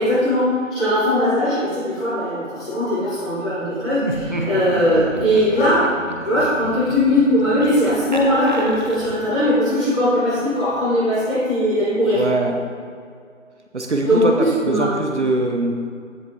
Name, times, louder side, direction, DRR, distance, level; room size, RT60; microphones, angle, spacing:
voice 1, 0.0-5.9 6.2-12.2 14.0-14.9, equal, 5° left, -19 dB, 2.1 m, -19 dB
Laughter, 3.9-9.4, right 1 dB, 35° right, 0.8 m, -31 dB
voice 2, 12.1-12.6 13.7-15.7, right 2 dB, 60° right, 2 dB, 1.0 m, -22 dB
15.5 x 6.6 x 2.7 m, 2.2 s
figure-of-eight pair, 175°, 39 cm